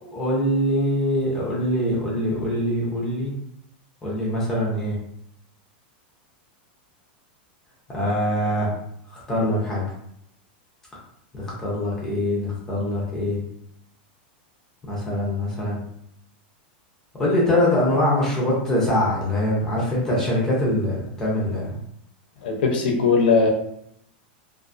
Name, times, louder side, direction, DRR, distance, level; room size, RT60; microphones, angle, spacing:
voice 1, 0.0-3.3 4.0-5.0 7.9-8.7 9.1-9.8 11.3-13.4 14.9-15.8 17.2-21.8, left 1 dB, 10° left, -5 dB, 0.6 m, -23 dB
voice 2, 22.4-23.5, left 4 dB, 70° left, 1 dB, 0.6 m, -19 dB
2.5 x 2.4 x 2.5 m, 0.73 s
supercardioid pair, 165°, 5 cm